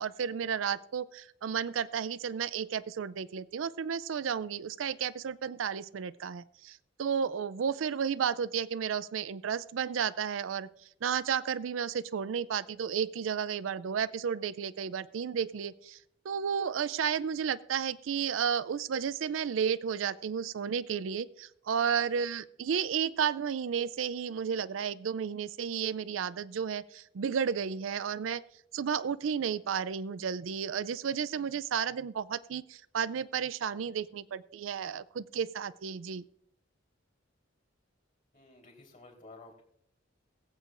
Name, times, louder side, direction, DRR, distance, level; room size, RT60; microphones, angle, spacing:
voice 1, 0.0-10.7 11.0-16.0 16.2-28.4 28.7-36.3, right 7 dB, 85° right, 17 dB, 0.4 m, -32 dB
voice 2, 38.3-39.6, left 2 dB, 45° left, 1 dB, 3.7 m, -53 dB
21.5 x 8.3 x 2.5 m, 0.72 s
head